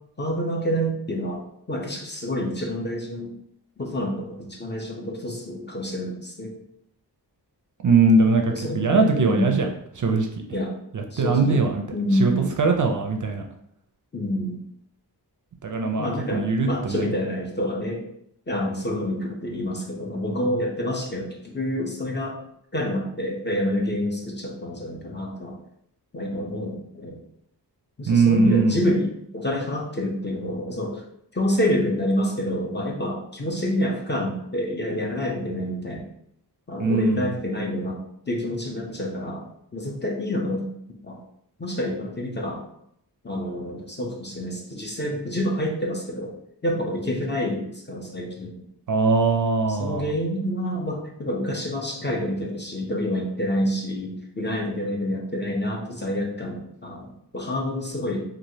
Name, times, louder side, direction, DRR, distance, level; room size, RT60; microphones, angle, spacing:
voice 1, 0.2-1.4 1.7-3.3 3.8-6.6 8.5-9.6 10.5-10.8 11.1-12.5 14.1-14.6 16.0-18.0 18.5-22.4 22.7-25.6 26.1-27.2 28.0-31.0 31.3-36.1 36.7-40.7 41.0-41.2 41.6-42.6 43.2-46.4 46.6-48.6 49.7-58.2, equal, 25° left, 0 dB, 0.6 m, -28 dB
voice 2, 7.8-9.7 10.0-10.3 10.9-11.8 12.2-13.4 15.6-17.1 28.1-28.8 36.8-37.3 48.9-50.1, right 3 dB, 50° right, 3 dB, 0.4 m, -21 dB
3.0 x 2.4 x 2.7 m, 0.73 s
wide cardioid pair, 60°, 42 cm